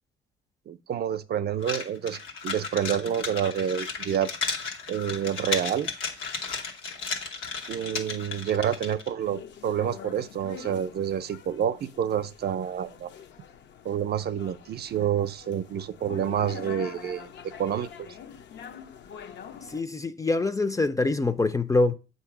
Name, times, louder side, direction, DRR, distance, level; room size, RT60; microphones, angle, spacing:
voice 1, 0.7-4.3 4.9-5.9 7.7-13.1 13.8-17.3 17.6-17.9, right 9 dB, 55° right, 0.5 m, -28 dB
sound 1, 1.6-9.1, left 5 dB, 90° left, 1.1 m, -34 dB
sound 2, 9.2-19.8, left 7 dB, 65° left, 0.6 m, -45 dB
voice 2, 19.7-21.9, left 3 dB, 15° left, 0.4 m, -25 dB
7.9 x 2.8 x 5.8 m
cardioid pair, 90°, 20 cm